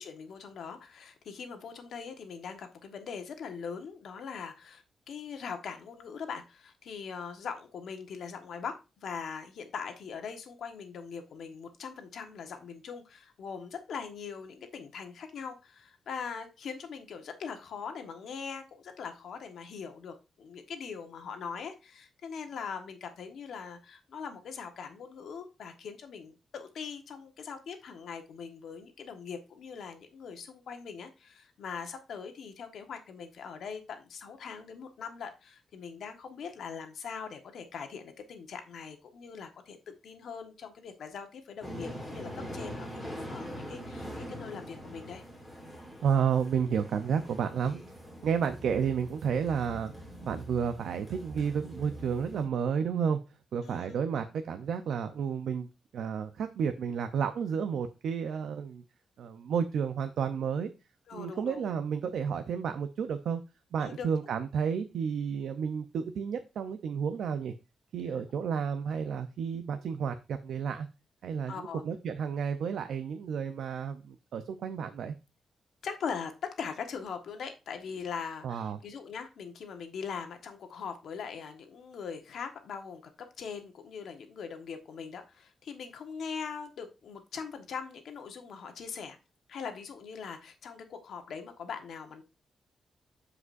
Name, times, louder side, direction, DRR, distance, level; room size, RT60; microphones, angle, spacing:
voice 1, 0.0-45.2 53.6-54.0 61.1-61.6 63.8-64.1 71.5-71.8 75.8-83.1 83.4-89.2 89.5-92.2, left 6 dB, 65° left, 6 dB, 1.3 m, -41 dB
sound 1, 41.6-52.5, equal, ahead, 2.4 m, -43 dB
voice 2, 46.0-47.8 48.2-49.9 50.2-53.2 53.5-55.7 55.9-58.8 59.2-60.7 61.1-63.4 63.7-67.5 67.9-70.9 71.2-75.1 78.4-78.8, right 7 dB, 70° right, 7 dB, 0.6 m, -31 dB
14.5 x 4.9 x 2.6 m, 0.28 s
wide cardioid pair, 180°, 0 cm